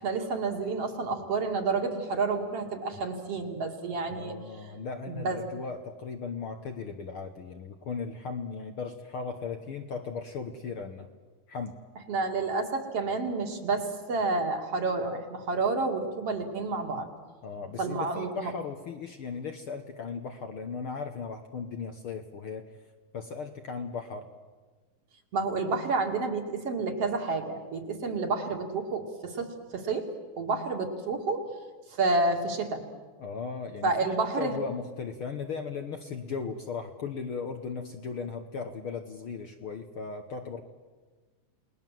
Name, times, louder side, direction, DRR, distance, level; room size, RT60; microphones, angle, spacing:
voice 1, 0.0-4.3 5.1-5.4 12.1-17.1 17.8-18.5 25.3-29.5 29.7-30.1 30.4-31.4 31.9-32.8 33.8-34.6, right 3 dB, 55° right, 3 dB, 3.2 m, -29 dB
voice 2, 4.1-11.1 11.5-11.8 17.4-22.8 23.1-24.3 33.2-40.6, left 5 dB, 55° left, 5 dB, 1.7 m, -37 dB
29.5 x 20.0 x 7.6 m, 1.4 s
omnidirectional pair, 3.5 m